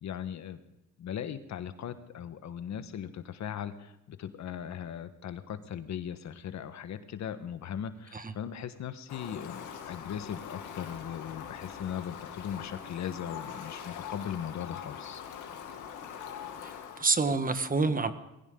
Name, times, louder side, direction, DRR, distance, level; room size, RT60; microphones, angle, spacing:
voice 1, 0.0-0.6 1.0-15.2, left 9 dB, 65° left, 10 dB, 1.4 m, -38 dB
Fowl, 9.1-17.1, left 8 dB, 85° left, 2.4 m, -43 dB
voice 2, 16.6-18.1, right 4 dB, 30° right, 10 dB, 1.5 m, -28 dB
20.5 x 16.0 x 3.8 m, 0.94 s
cardioid pair, 90°, 30 cm